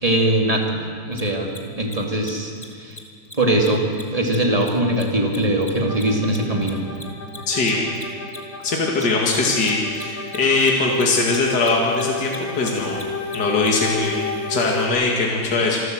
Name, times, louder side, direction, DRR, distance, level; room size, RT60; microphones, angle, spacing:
voice 1, 0.0-0.8 1.0-2.5 2.8-3.0 3.3-3.8 4.1-6.8, right 1 dB, 20° right, 1 dB, 2.6 m, -21 dB
Mechanisms, 1.1-1.2 1.5-1.6 1.8-2.0 2.2-2.3 2.6-2.7 2.9-3.0 3.2-3.3 3.6-6.4 6.6-13.7, left 2 dB, 20° left, 1.9 m, -38 dB
sound 1, 5.9-14.9, left 4 dB, 80° left, 3.8 m, -32 dB
voice 2, 7.5-7.9 8.6-13.1 13.3-15.8, left 3 dB, 60° left, -2 dB, 2.7 m, -21 dB
26.5 x 12.5 x 7.7 m, 2.3 s
omnidirectional pair, 2.0 m